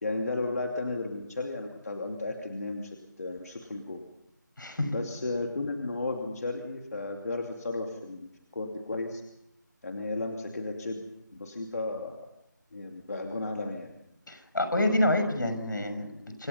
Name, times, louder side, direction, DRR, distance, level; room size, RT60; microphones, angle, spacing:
voice 1, 0.0-4.0 4.9-9.2 9.8-11.0 11.3-12.2 12.7-13.9, left 2 dB, 55° left, 3 dB, 2.7 m, -34 dB
voice 2, 4.6-4.9 14.3-16.5, left 1 dB, 75° left, 8 dB, 5.6 m, -28 dB
27.0 x 25.0 x 5.5 m, 0.81 s
figure-of-eight pair, 170°, 10 cm